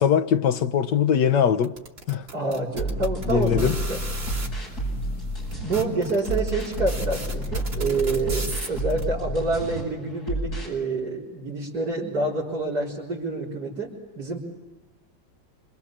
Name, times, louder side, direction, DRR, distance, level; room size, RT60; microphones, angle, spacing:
voice 1, 0.0-1.7 2.1-2.3 3.3-3.8, left 8 dB, 70° left, 1.7 m, -21 dB
sound 1, 1.6-4.5 5.2-5.3 5.5-9.0, right 2 dB, 40° right, 3.5 m, -36 dB
voice 2, 2.3-4.0 5.5-14.4, right 3 dB, 60° right, 4.7 m, -27 dB
sound 2, 2.7-5.8 6.2-9.8 10.2-10.7, right 1 dB, 55° left, 8.7 m, -30 dB
27.0 x 26.0 x 7.4 m
omnidirectional pair, 2.0 m